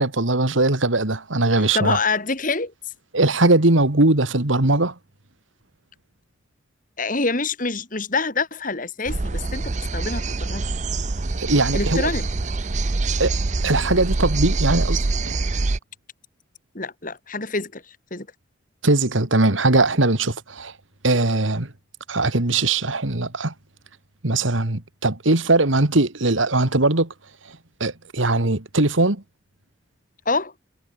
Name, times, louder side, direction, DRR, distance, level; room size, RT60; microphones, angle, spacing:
voice 1, 0.0-2.0 3.1-4.9 11.4-12.1 13.2-13.3 13.6-15.4 18.8-20.7 21.0-21.7 22.1-23.5 24.2-27.1 27.8-29.2, right 2 dB, 90° right, 2.4 m, -20 dB
voice 2, 1.7-2.7 7.0-10.7 11.7-12.3 16.7-18.3 30.3-30.5, left 3 dB, 45° left, 2.7 m, -26 dB
sound 1, 9.1-15.8, right 3 dB, 40° right, 0.7 m, -25 dB
head